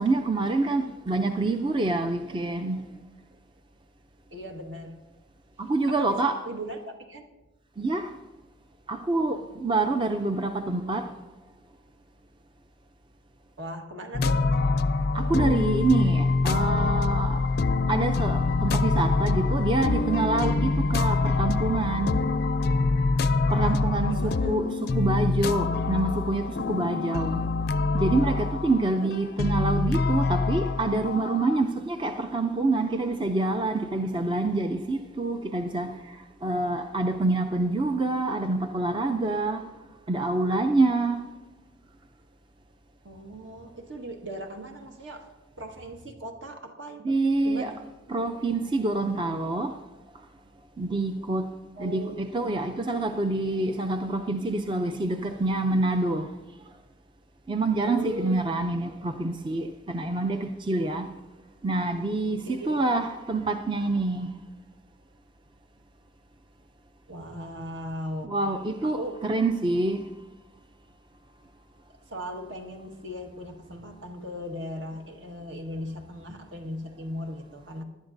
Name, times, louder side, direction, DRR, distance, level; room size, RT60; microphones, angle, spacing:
voice 1, 0.0-2.8 5.6-6.3 7.8-8.1 8.9-11.1 15.1-17.4 17.9-22.2 23.5-27.4 27.9-36.2 36.4-39.7 40.1-41.2 47.0-47.7 48.1-49.7 50.8-51.5 51.8-56.3 57.5-61.1 61.6-64.3 68.2-70.0, right 2 dB, 25° right, 0.4 m, -26 dB
voice 2, 4.3-5.0 5.9-6.2 6.4-7.2 13.6-14.5 23.6-24.5 29.0-29.1 43.0-45.3 45.6-47.8 51.8-52.4 57.8-58.6 62.4-62.9 67.1-68.4 68.8-69.1 72.1-77.8, equal, 65° right, 1.5 m, -38 dB
sound 1, 14.1-31.6, left 3 dB, 50° left, 0.4 m, -25 dB
18.5 x 11.5 x 2.6 m
head